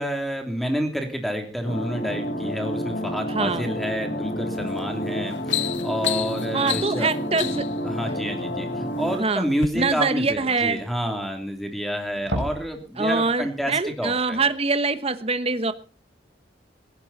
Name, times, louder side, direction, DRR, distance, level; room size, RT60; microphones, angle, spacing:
voice 1, 0.0-7.1 7.8-14.4, equal, ahead, 4 dB, 3.0 m, -29 dB
sound 1, 1.6-9.2, equal, 55° left, 2.5 m, -29 dB
voice 2, 3.3-3.7 6.5-7.7 9.2-9.5 9.7-10.8 13.0-15.7, right 4 dB, 35° right, 11 dB, 1.2 m, -24 dB
sound 2, 4.6-4.8 5.2-7.8 8.6-9.1 9.5-9.7, left 12 dB, 90° left, 0.7 m, -30 dB
sound 3, 8.7-8.8 9.1-9.2 9.4-11.7 12.0-12.8 13.1-13.3 13.7-13.8, right 1 dB, 75° right, 3.9 m, -34 dB
17.0 x 16.5 x 4.2 m, 0.36 s
head